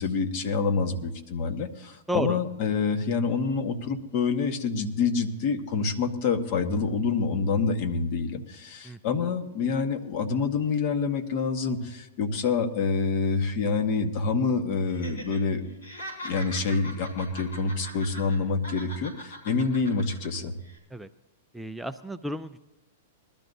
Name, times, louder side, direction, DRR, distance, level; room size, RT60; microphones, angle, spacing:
voice 1, 0.0-15.7 16.2-20.5, left 4 dB, 45° left, 8 dB, 1.3 m, -27 dB
voice 2, 2.1-2.4 8.8-9.0 20.9-21.1 21.5-22.6, equal, 5° right, 7 dB, 0.4 m, -32 dB
Laughter, 14.9-15.4 15.7-18.4 18.6-20.3 20.6-20.8, equal, 85° left, 4.6 m, -41 dB
21.0 x 12.5 x 2.7 m, 0.98 s
hypercardioid pair, 125°, 0 cm